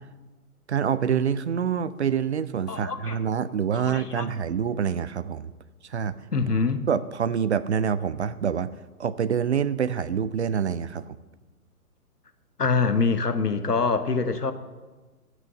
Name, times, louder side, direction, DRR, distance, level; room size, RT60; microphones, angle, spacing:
voice 1, 0.7-5.5 5.9-6.2 6.9-8.7 9.0-11.1, right 7 dB, 50° right, 16 dB, 0.5 m, -26 dB
voice 2, 2.7-3.2 3.7-4.3 6.3-6.9 12.6-14.5, left 4 dB, 90° left, 10 dB, 1.1 m, -25 dB
13.5 x 6.2 x 6.3 m, 1.3 s
figure-of-eight pair, 130°, 46 cm